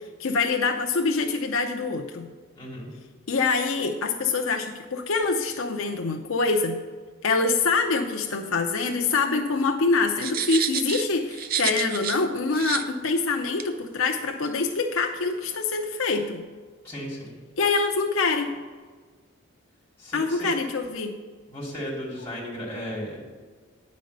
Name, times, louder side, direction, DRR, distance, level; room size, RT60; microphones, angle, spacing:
voice 1, 0.2-2.3 3.3-6.8 7.2-16.4 17.6-18.6 20.1-21.1, left 4 dB, 85° left, 3 dB, 0.7 m, -25 dB
voice 2, 2.5-2.9 16.8-17.3 20.0-20.5 21.5-23.2, equal, 10° left, -4 dB, 2.6 m, -35 dB
sound 1, 10.2-12.2 12.5-12.8 13.6-13.7, right 8 dB, 45° right, 0.5 m, -29 dB
9.4 x 5.3 x 6.6 m, 1.5 s
head